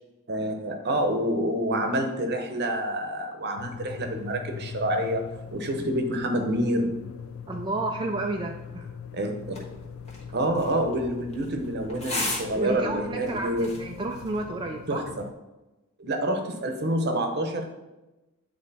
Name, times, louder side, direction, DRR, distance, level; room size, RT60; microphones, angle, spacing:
voice 1, 0.3-5.3 5.5-6.9 9.1-9.6 10.3-13.7 14.9-15.0 16.0-17.7, right 1 dB, 50° right, 5 dB, 0.9 m, -27 dB
sound 1, 3.6-15.3, left 6 dB, 90° left, 0.4 m, -41 dB
voice 2, 7.5-8.9 12.5-15.1, right 2 dB, 20° right, 2 dB, 0.4 m, -31 dB
sound 2, 9.4-14.4, left 2 dB, 30° left, 1.3 m, -37 dB
9.0 x 3.2 x 4.1 m, 1.0 s
head